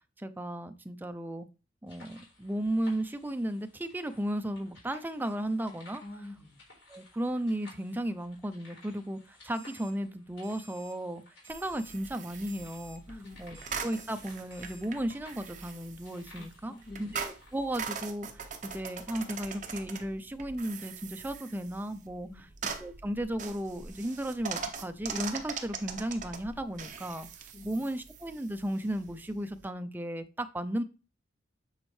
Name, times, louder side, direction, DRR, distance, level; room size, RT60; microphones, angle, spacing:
voice 1, 0.2-1.5 1.8-6.0 6.9-13.0 13.4-16.7 17.0-22.3 22.8-30.8, right 1 dB, 10° right, 0.4 m, -35 dB
sound 1, 1.9-17.6, left 2 dB, 75° left, 4.0 m, -57 dB
voice 2, 6.0-6.6 13.1-13.6 16.3-17.2 22.2-22.5 27.5-27.8, left 2 dB, 45° left, 2.4 m, -47 dB
Alarm, 9.5-9.9 10.4-10.9 11.4-11.9 12.5-13.0 13.5-14.1 14.5-14.8, right 5 dB, 70° right, 1.1 m, -54 dB
sound 2, 11.5-29.7, right 6 dB, 40° right, 0.8 m, -42 dB
8.9 x 4.3 x 3.2 m
head